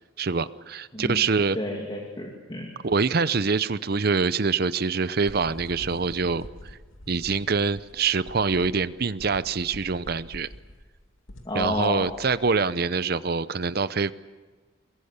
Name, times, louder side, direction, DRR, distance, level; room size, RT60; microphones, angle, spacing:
voice 1, 0.2-1.6 2.8-6.8 7.1-10.5 11.5-14.1, right 4 dB, 50° right, 16 dB, 0.6 m, -25 dB
voice 2, 1.5-2.7 11.4-12.1, left 1 dB, 25° left, -1 dB, 2.5 m, -30 dB
sound 1, 5.2-12.8, left 1 dB, 85° left, 2.5 m, -45 dB
22.5 x 22.0 x 8.2 m, 1.4 s
head